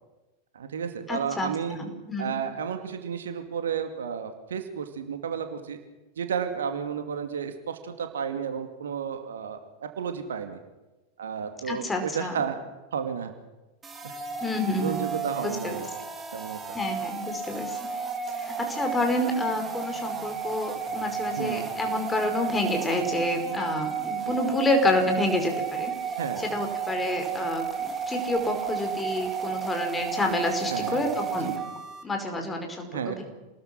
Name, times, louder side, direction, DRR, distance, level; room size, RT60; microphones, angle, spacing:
voice 1, 0.5-1.8 2.2-5.8 6.2-10.6 11.2-12.6 12.9-13.3 14.0-14.2 14.8-15.9 16.3-16.6 21.4-21.7 24.3-24.4 26.2-26.5 30.7-31.0 31.4-31.6 32.9-33.2, right 7 dB, 65° right, 7 dB, 2.4 m, -32 dB
voice 2, 1.1-2.3 11.7-12.4 14.4-15.1 15.4-15.8 16.7-17.8 18.4-25.9 26.4-31.5 32.0-33.2, left 1 dB, 15° left, 4 dB, 5.3 m, -28 dB
sound 1, 13.8-32.0, right 6 dB, 15° right, 3.5 m, -33 dB
28.0 x 20.5 x 6.2 m, 1.1 s
figure-of-eight pair, 90°, 0 cm